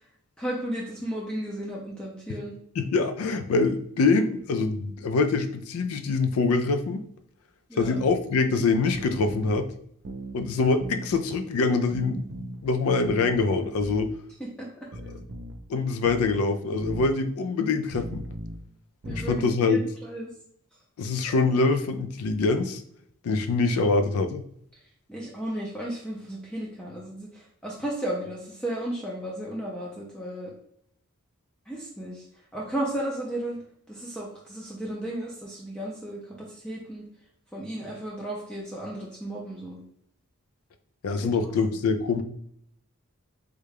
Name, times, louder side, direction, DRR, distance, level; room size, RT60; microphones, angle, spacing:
voice 1, 0.4-2.5 7.7-8.0 14.4-14.7 19.0-20.3 21.3-21.4 25.1-30.5 31.7-32.2 32.5-33.6 33.9-37.0 37.5-39.8, right 1 dB, 5° left, -4 dB, 0.4 m, -34 dB
voice 2, 2.8-7.0 7.8-9.7 10.3-14.1 15.7-18.2 19.1-19.8 21.0-22.8 23.2-24.4 41.0-42.2, left 3 dB, 80° left, 8 dB, 0.3 m, -24 dB
sound 1, 7.8-8.1 8.9-9.6 10.0-10.4 10.8-11.1 11.9-12.6 13.0-13.4 13.8-14.1 14.9-15.6 16.0-16.4 16.8-17.1 17.9-18.6 19.0-19.4, right 1 dB, 60° right, 0.5 m, -37 dB
3.6 x 2.2 x 3.3 m, 0.68 s
head